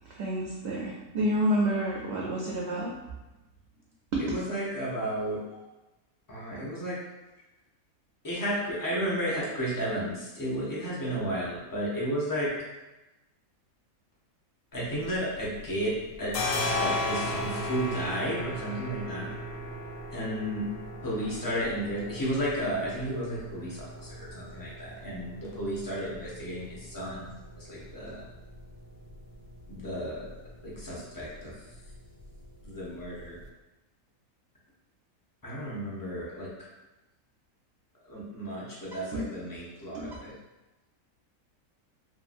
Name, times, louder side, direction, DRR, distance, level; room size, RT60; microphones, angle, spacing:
voice 1, 0.0-2.9 4.1-4.3 39.1-39.3 39.9-40.1, right 1 dB, 65° right, -4 dB, 0.7 m, -29 dB
voice 2, 4.2-5.4 6.3-7.0 8.2-12.5 14.7-15.9 16.2-19.3 20.1-20.7 21.0-27.3 27.6-28.2 29.7-30.3 30.6-31.5 32.6-33.4 35.4-36.5 38.1-40.3, equal, 25° left, -7 dB, 0.4 m, -33 dB
sound 1, 14.8-15.7 15.9-33.5, left 1 dB, 90° left, 1.0 m, -37 dB
2.8 x 2.5 x 2.5 m, 1.0 s
omnidirectional pair, 1.5 m